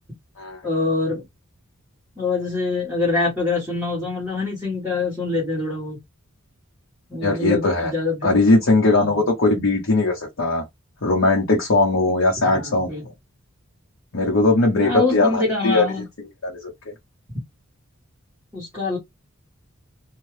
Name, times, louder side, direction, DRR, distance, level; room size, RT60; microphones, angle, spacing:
voice 1, 0.6-1.2 2.2-6.0 7.1-8.3 9.0-9.2 12.4-13.0 14.8-16.1 18.5-19.0, left 3 dB, 5° right, 1.3 m, -24 dB
voice 2, 7.2-7.9 8.2-10.6 11.0-12.9 14.1-15.9 16.4-16.7, left 2 dB, 65° left, 0.9 m, -19 dB
2.7 x 2.3 x 3.2 m
head